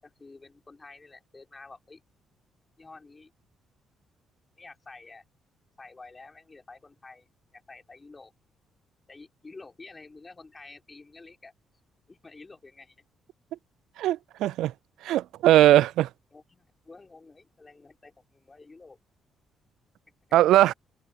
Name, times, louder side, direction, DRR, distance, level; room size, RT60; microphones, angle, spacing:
voice 1, 0.0-2.0 2.8-3.3 4.6-5.2 5.8-8.3 9.1-11.5 12.1-13.0 16.3-19.0, left 3 dB, 25° left, 5.6 m, -49 dB
voice 2, 14.0-14.7 15.0-16.1 20.3-20.7, right 14 dB, 85° right, 0.3 m, -20 dB
cardioid pair, 90°, 0 cm